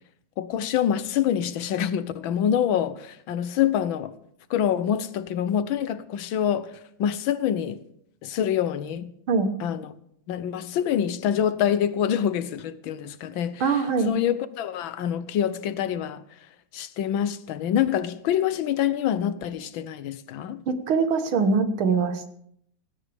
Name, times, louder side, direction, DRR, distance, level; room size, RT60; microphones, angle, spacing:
voice 1, 0.4-4.2 4.5-7.8 8.2-9.1 9.6-9.9 10.3-16.2 16.7-20.6, left 9 dB, 75° left, 1.6 m, -26 dB
voice 2, 13.6-14.1 20.7-22.3, right 5 dB, 85° right, 2.1 m, -23 dB
18.0 x 16.5 x 3.5 m
omnidirectional pair, 2.2 m